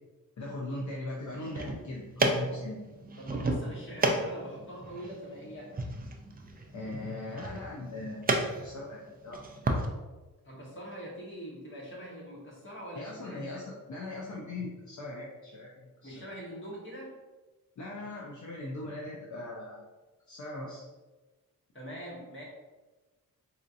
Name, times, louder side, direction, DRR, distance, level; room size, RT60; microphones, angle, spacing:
voice 1, 0.4-2.8 6.7-9.4 12.9-16.1 17.8-19.8 20.3-20.8, left 2 dB, 55° left, -3 dB, 0.6 m, -39 dB
sound 1, 1.3-9.8, right 2 dB, 25° right, 0.4 m, -33 dB
voice 2, 3.2-5.7 10.4-13.6 16.0-17.1 21.7-22.4, equal, 35° left, -4 dB, 1.2 m, -43 dB
4.2 x 2.7 x 2.5 m, 1.2 s
wide cardioid pair, 90°, 35 cm